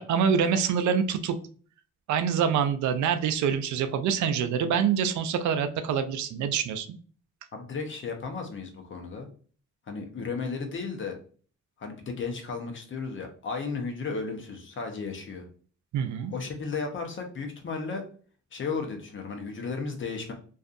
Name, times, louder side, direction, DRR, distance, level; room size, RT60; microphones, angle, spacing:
voice 1, 0.0-1.4 2.1-6.9 15.9-16.3, right 7 dB, 70° right, 9 dB, 0.4 m, -25 dB
voice 2, 7.5-9.3 9.9-11.2 11.8-15.5 16.3-18.0 18.5-20.3, left 4 dB, 40° left, 3 dB, 0.8 m, -34 dB
2.5 x 2.4 x 2.5 m, 0.42 s
cardioid pair, 90°, 30 cm